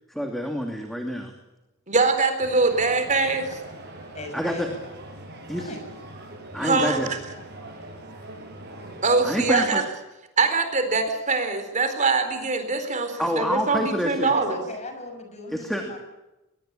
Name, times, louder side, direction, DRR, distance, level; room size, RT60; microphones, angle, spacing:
voice 1, 0.1-1.3 4.3-4.7 5.5-5.7 6.5-7.1 9.2-9.8 13.2-14.4 15.5-16.0, equal, ahead, 3 dB, 2.6 m, -27 dB
voice 2, 1.9-3.6 6.6-7.0 9.0-9.8 10.4-14.6, right 3 dB, 35° right, 7 dB, 4.1 m, -23 dB
sound 1, 2.4-9.7, right 1 dB, 55° right, 7.4 m, -42 dB
voice 3, 4.1-4.7 5.6-5.8 6.6-7.0 14.3-16.0, left 2 dB, 35° left, 6 dB, 6.2 m, -37 dB
23.0 x 22.0 x 8.8 m, 0.98 s
head